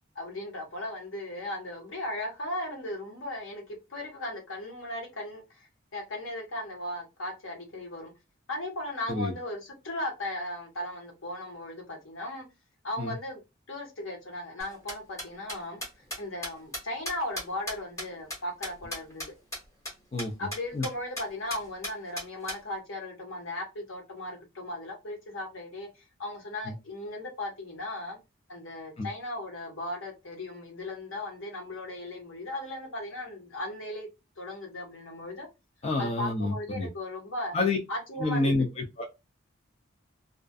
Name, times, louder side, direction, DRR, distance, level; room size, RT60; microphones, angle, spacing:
voice 1, 0.1-5.7 5.9-8.1 8.5-12.4 12.8-13.4 13.7-15.8 16.2-19.3 20.4-28.2 28.5-34.1 34.4-35.5 36.0-37.6 37.9-38.7, left 1 dB, 80° left, 1.2 m, -37 dB
sound 1, 14.6-19.3 19.5-19.6 19.8-19.9 20.2-20.3 20.5-20.9 21.2-21.3 21.5-22.6, equal, 15° left, 1.2 m, -36 dB
voice 2, 35.8-36.9 37.5-37.8 38.2-39.0, left 2 dB, 30° left, 0.4 m, -28 dB
2.4 x 2.4 x 2.3 m
head